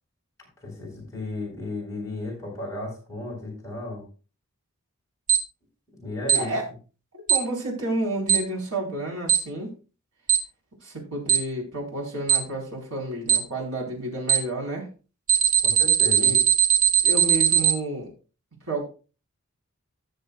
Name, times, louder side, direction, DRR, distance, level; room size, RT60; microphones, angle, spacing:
voice 1, 0.6-4.0 6.0-6.5 15.6-16.4, left 2 dB, 15° left, -4 dB, 4.7 m, -34 dB
Alarm, 5.3-5.4 6.3-6.4 7.3-7.4 8.3-8.4 9.3-9.4 10.3-10.4 11.3-11.4 12.3-12.4 13.3-13.4 14.3-14.4 15.3-17.7, right 9 dB, 35° right, 1.2 m, -18 dB
voice 2, 6.3-6.6 7.3-9.7 10.8-14.9 16.1-16.4 17.0-18.1 18.7-18.8, right 1 dB, 90° right, -2 dB, 4.4 m, -30 dB
18.0 x 6.7 x 2.4 m, 0.35 s
head